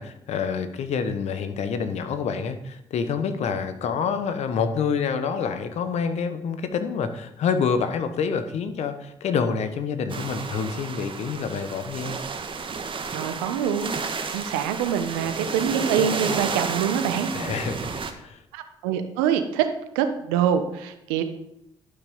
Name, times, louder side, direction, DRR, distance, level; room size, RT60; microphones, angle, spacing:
voice 1, 0.0-12.2 17.3-18.4, left 6 dB, 70° left, 9 dB, 1.1 m, -27 dB
sound 1, 10.1-18.1, right 5 dB, 45° right, 1.3 m, -31 dB
voice 2, 13.1-14.0 14.3-17.3 18.5-19.7 19.9-21.2, right 8 dB, 90° right, 9 dB, 0.9 m, -25 dB
11.5 x 5.9 x 5.4 m, 0.79 s
hypercardioid pair, 50°, 12 cm